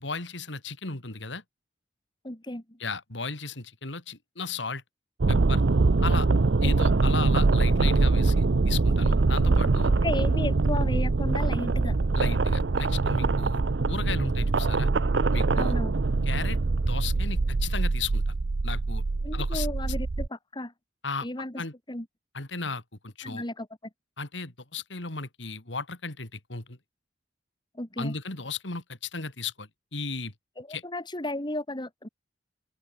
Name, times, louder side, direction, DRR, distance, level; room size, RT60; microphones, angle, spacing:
voice 1, 0.0-1.4 2.8-4.8 5.3-5.6 6.0-6.3 6.6-9.9 12.1-13.6 13.9-14.9 15.3-15.7 16.3-18.4 18.6-19.0 19.3-19.7 21.0-21.3 21.6-21.7 22.3-23.4 24.2-26.8 28.0-30.3 30.7-30.8, left 4 dB, 80° left, 3.4 m, -35 dB
voice 2, 2.2-2.8 9.4-9.7 10.0-12.0 15.5-16.0 19.2-20.7 21.2-21.6 21.9-22.1 23.2-23.7 27.7-28.1 30.6-32.1, left 1 dB, 25° left, 2.6 m, -34 dB
sound 1, 5.2-20.3, right 3 dB, 70° right, 0.7 m, -23 dB
head